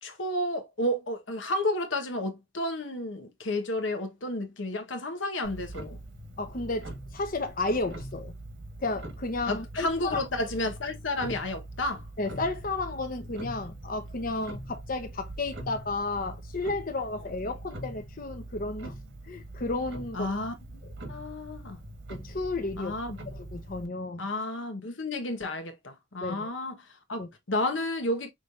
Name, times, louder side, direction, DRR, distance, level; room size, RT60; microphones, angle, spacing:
voice 1, 0.0-6.0 9.5-12.1 20.1-20.5 21.1-21.8 22.8-23.2 24.2-28.3, left 1 dB, 85° left, 1.2 m, -31 dB
Clock, 5.4-23.9, right 1 dB, 70° right, 1.5 m, -42 dB
voice 2, 6.4-8.3 8.8-10.2 12.2-18.9 19.2-20.3 22.1-23.0 23.3-24.3 26.2-26.5 27.2-27.3, left 2 dB, 50° left, 0.9 m, -32 dB
6.2 x 3.2 x 2.6 m
head